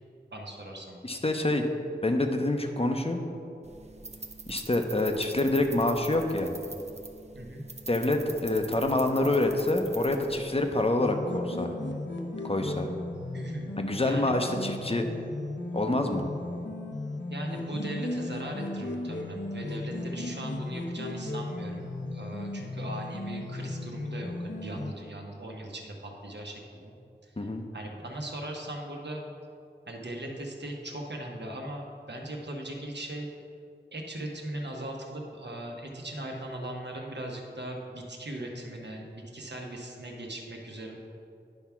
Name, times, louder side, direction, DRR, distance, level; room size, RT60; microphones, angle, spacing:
voice 1, 0.3-1.0 7.3-7.6 13.3-13.7 14.0-14.3 17.3-27.0 27.2-29.2 29.9-33.3 33.9-41.0, right 1 dB, 70° right, 0 dB, 1.1 m, -39 dB
voice 2, 1.0-1.7 2.0-3.2 4.5-6.5 7.9-11.7 12.4-12.9 13.8-15.1 15.7-16.2 27.4-27.6, left 2 dB, 30° left, 4 dB, 0.7 m, -27 dB
sound 1, 3.6-10.9, right 3 dB, 35° right, 0.6 m, -44 dB
sound 2, 11.0-24.9, left 2 dB, 75° left, 0.8 m, -36 dB
10.5 x 3.5 x 5.8 m, 2.6 s
wide cardioid pair, 50°, 19 cm